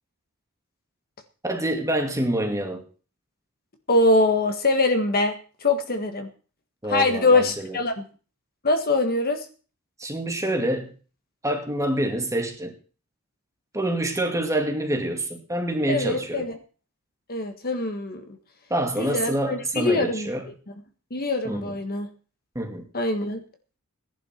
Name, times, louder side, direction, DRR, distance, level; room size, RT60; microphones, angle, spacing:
voice 1, 1.4-2.9 6.8-7.8 10.0-10.9 11.4-12.7 13.7-16.5 18.7-20.5 21.4-21.7 22.5-22.9, right 1 dB, 15° right, 4 dB, 2.3 m, -26 dB
voice 2, 3.9-5.3 5.6-6.3 6.9-8.0 8.6-9.4 15.9-16.5 17.3-18.2 19.0-20.3 21.1-22.1 22.9-23.4, left 2 dB, 45° left, 6 dB, 1.6 m, -23 dB
17.0 x 11.0 x 4.5 m, 0.38 s
head